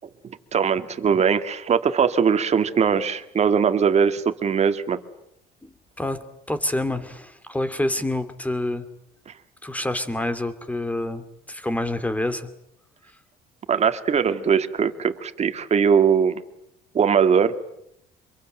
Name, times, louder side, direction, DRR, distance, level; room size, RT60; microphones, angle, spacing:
voice 1, 0.2-5.0 9.3-9.4 13.7-16.4 16.9-17.6, right 6 dB, 40° right, 9 dB, 2.0 m, -21 dB
voice 2, 5.6-8.8 9.6-12.5, left 1 dB, 10° left, 10 dB, 2.5 m, -27 dB
26.5 x 23.0 x 9.2 m, 0.79 s
cardioid pair, 110°, 17 cm